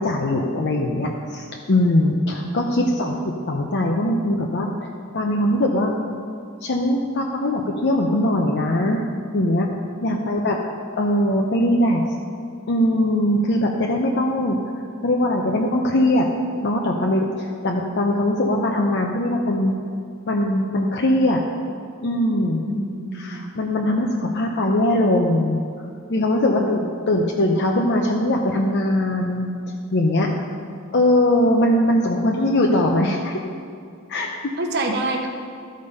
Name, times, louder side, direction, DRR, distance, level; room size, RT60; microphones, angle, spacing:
voice 1, 0.0-3.2 3.5-5.9 6.6-9.0 9.3-9.7 10.0-10.6 11.0-12.1 12.7-16.3 16.6-19.7 20.3-21.4 22.0-22.6 23.1-25.6 26.1-29.5 29.9-30.3 30.9-33.4 34.1-34.3, left 1 dB, 55° left, 0 dB, 0.7 m, -21 dB
voice 2, 2.3-3.0 10.1-10.5 22.6-23.5 26.5-26.7 30.6-30.7 34.6-35.3, right 2 dB, 50° right, 3 dB, 1.0 m, -28 dB
13.0 x 5.2 x 5.4 m, 2.3 s
head